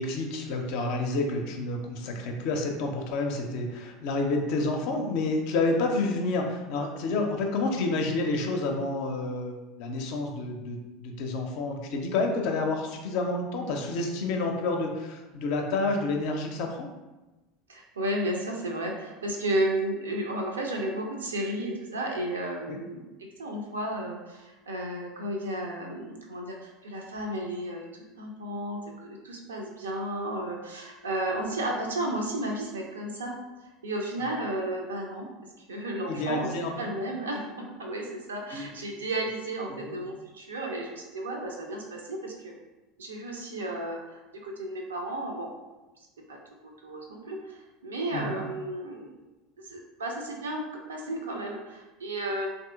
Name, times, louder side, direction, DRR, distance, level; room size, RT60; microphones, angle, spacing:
voice 1, 0.0-16.9 22.7-22.8 36.1-36.9 38.5-38.7 39.7-40.0 48.1-48.4, left 2 dB, 55° left, 3 dB, 0.4 m, -29 dB
voice 2, 17.7-23.1 23.4-33.4 33.8-35.3 35.7-42.5 43.0-45.5 46.3-49.1 49.6-50.6 50.9-52.5, right 1 dB, 75° right, 1 dB, 0.5 m, -33 dB
2.9 x 2.6 x 2.3 m, 1.1 s
figure-of-eight pair, 75°, 0 cm